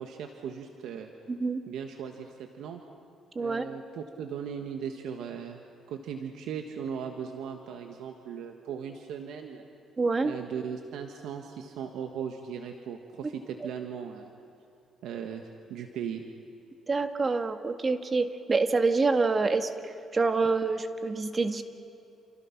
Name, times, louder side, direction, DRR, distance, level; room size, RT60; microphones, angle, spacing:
voice 1, 0.0-1.1 1.7-2.8 3.4-5.6 5.9-9.6 10.2-14.3 15.0-16.2, right 7 dB, 85° right, 4 dB, 1.5 m, -38 dB
voice 2, 1.3-1.6 3.4-3.6 10.0-10.3 16.9-19.7 20.1-21.6, right 3 dB, 30° right, 8 dB, 1.7 m, -26 dB
29.0 x 27.5 x 6.0 m, 2.7 s
cardioid pair, 90°, 0 cm